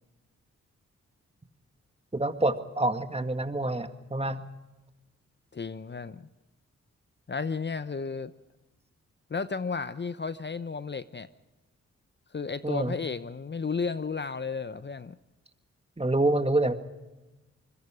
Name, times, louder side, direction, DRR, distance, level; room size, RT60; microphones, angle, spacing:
voice 1, 2.1-4.5 12.6-13.0 16.0-16.7, right 2 dB, 20° right, 8 dB, 2.1 m, -27 dB
voice 2, 5.5-6.3 7.3-8.3 9.3-11.3 12.3-15.2, left 5 dB, 35° left, 13 dB, 0.9 m, -33 dB
25.5 x 21.5 x 5.0 m, 1.1 s
supercardioid pair, 45°, 30 cm